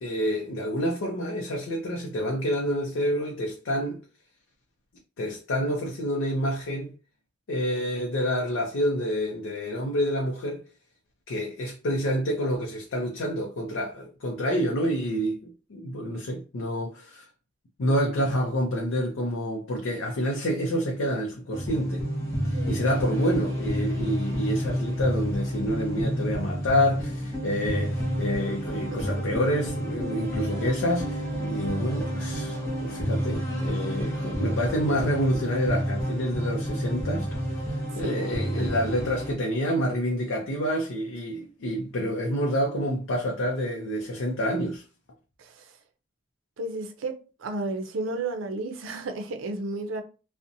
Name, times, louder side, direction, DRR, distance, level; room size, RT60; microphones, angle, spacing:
voice 1, 0.0-4.0 5.2-6.9 7.5-10.6 11.3-17.3 17.8-22.0 22.4-44.8, equal, 85° left, 0.5 m, -28 dB
sound 1, 21.5-39.3, equal, 15° left, 0.6 m, -30 dB
voice 2, 22.5-22.9 28.9-29.1 38.0-38.7 45.4-45.7 46.6-47.1 47.4-50.0, right 2 dB, 90° right, 0.5 m, -33 dB
2.6 x 2.1 x 2.6 m
head